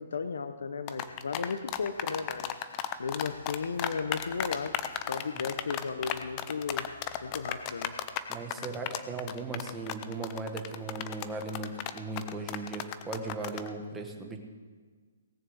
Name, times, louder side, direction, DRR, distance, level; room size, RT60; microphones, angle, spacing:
voice 1, 0.0-2.6 3.0-6.9 7.2-7.9, left 5 dB, 80° left, 11 dB, 0.8 m, -35 dB
sound 1, 0.9-13.7, left 11 dB, 20° left, 0.5 m, -34 dB
voice 2, 8.3-14.4, right 3 dB, 10° right, 3 dB, 1.0 m, -37 dB
18.0 x 6.9 x 7.8 m, 1.5 s
hypercardioid pair, 175°, 0 cm